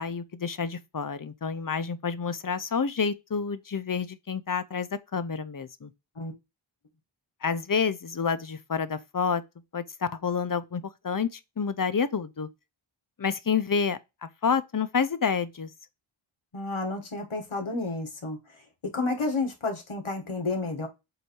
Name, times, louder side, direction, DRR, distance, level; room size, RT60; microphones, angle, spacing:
voice 1, 0.0-5.9 7.4-9.4 9.7-12.5 13.2-14.0 14.4-15.7, left 6 dB, 40° left, 0.7 m, -29 dB
voice 2, 16.5-18.4 18.9-20.9, left 3 dB, 70° left, 1.7 m, -30 dB
7.9 x 2.7 x 4.5 m
wide cardioid pair, 65°, 50 cm